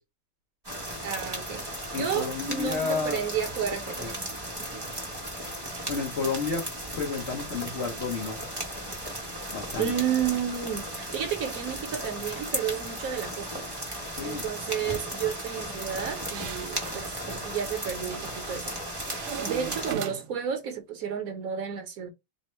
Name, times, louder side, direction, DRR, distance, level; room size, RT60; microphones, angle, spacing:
sound 1, 0.6-19.9, right 1 dB, 30° right, 0.4 m, -36 dB
voice 1, 1.0-1.7 2.0-4.2 4.6-4.9 9.8-13.7 14.2-18.8 19.4-22.1, right 8 dB, 60° right, 1.0 m, -32 dB
voice 2, 1.9-3.2 4.0-4.1 5.9-6.6 7.0-8.4 9.5-9.9 14.2-14.5, left 5 dB, 65° left, 0.6 m, -31 dB
sound 2, 15.9-17.1 18.1-18.6 19.0-20.5, right 9 dB, 80° right, 1.5 m, -38 dB
3.5 x 2.1 x 4.2 m
omnidirectional pair, 2.3 m